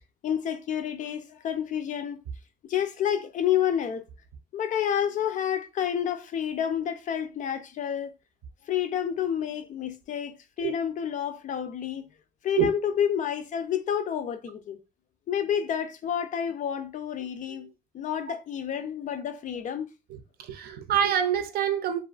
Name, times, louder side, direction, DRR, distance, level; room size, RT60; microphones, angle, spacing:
voice 1, 0.2-2.2 2.7-4.0 4.5-8.1 8.7-12.1 12.4-14.8 15.3-17.7 17.9-19.9, left 9 dB, 50° left, 0.4 m, -29 dB
voice 2, 20.1-22.0, right 9 dB, 65° right, 0.5 m, -26 dB
2.4 x 2.4 x 2.3 m
cardioid pair, 110°, 17 cm